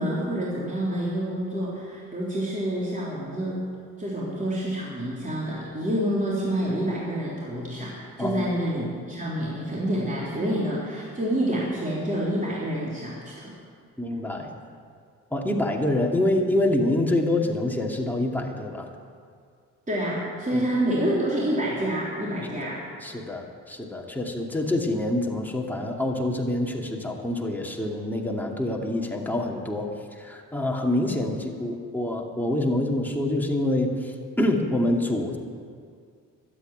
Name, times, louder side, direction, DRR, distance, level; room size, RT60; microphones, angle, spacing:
voice 1, 0.0-3.6 4.0-13.5 19.9-22.8, right 1 dB, 20° right, -6 dB, 3.7 m, -28 dB
voice 2, 8.2-8.5 14.0-14.6 15.3-18.9 20.5-20.7 22.6-22.7 23.0-29.9 30.2-35.4, left 1 dB, 5° left, 0 dB, 2.4 m, -26 dB
12.5 x 8.9 x 9.2 m, 2.2 s
supercardioid pair, 60°, 35 cm